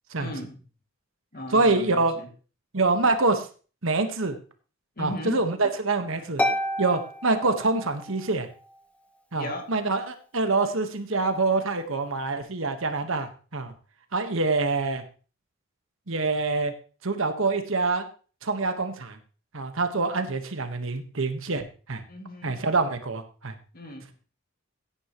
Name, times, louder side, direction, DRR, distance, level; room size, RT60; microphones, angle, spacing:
voice 1, 0.2-0.6 1.3-2.3 5.0-5.4 9.3-9.7 22.1-22.6 23.7-24.1, left 1 dB, 45° left, 3 dB, 2.2 m, -37 dB
voice 2, 1.5-2.1 2.7-3.5 3.8-4.4 5.0-6.4 6.8-8.5 9.3-13.7 14.1-15.0 16.1-16.7 17.0-18.1 18.4-19.2 19.5-22.0 22.4-23.5, right 3 dB, 70° right, 7 dB, 1.4 m, -25 dB
Harp, 6.4-8.3, left 1 dB, 5° left, 1.0 m, -29 dB
15.0 x 10.0 x 3.1 m, 0.38 s
head